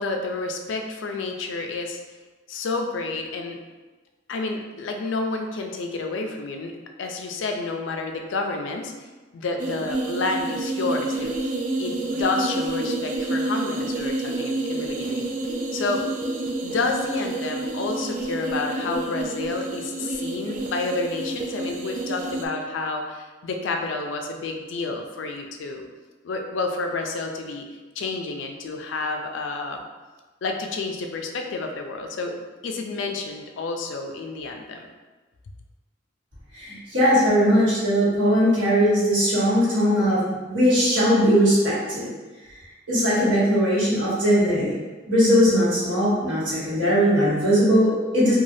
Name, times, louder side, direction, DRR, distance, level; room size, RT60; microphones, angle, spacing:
voice 1, 0.0-2.0 2.5-3.6 4.3-6.7 7.0-9.1 9.3-11.5 11.8-15.2 15.7-16.0 16.6-25.8 26.2-27.6 28.0-29.8 30.4-32.4 32.6-34.9, left 3 dB, 70° left, 3 dB, 0.4 m, -29 dB
sound 1, 9.6-22.5, right 2 dB, 40° right, 0.3 m, -29 dB
voice 2, 36.5-42.1 42.9-44.7 45.1-48.3, equal, 70° right, -9 dB, 1.3 m, -20 dB
3.2 x 2.2 x 2.6 m, 1.3 s
head